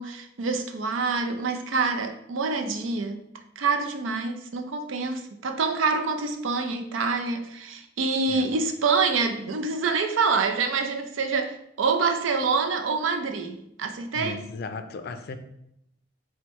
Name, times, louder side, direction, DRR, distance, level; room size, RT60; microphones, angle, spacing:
voice 1, 0.0-3.2 3.6-14.4, right 4 dB, 90° right, 6 dB, 0.5 m, -26 dB
voice 2, 14.1-15.4, left 4 dB, 55° left, 8 dB, 0.4 m, -36 dB
4.5 x 2.2 x 4.1 m, 0.78 s
head